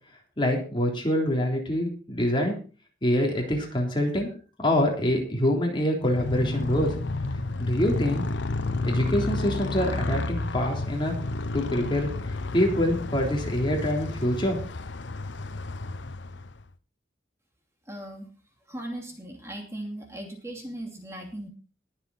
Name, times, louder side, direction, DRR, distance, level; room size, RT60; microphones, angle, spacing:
voice 1, 0.4-2.6 3.0-4.3 4.6-6.9 7.6-8.2 8.8-11.1 11.5-12.1 12.5-14.6, left 1 dB, 25° left, 1 dB, 3.6 m, -25 dB
Motorcycle, 6.0-16.7, left 2 dB, 85° left, 0.9 m, -31 dB
voice 2, 17.9-18.3 18.7-21.5, right 1 dB, 15° right, 2 dB, 2.7 m, -38 dB
21.0 x 7.6 x 4.3 m, 0.36 s
head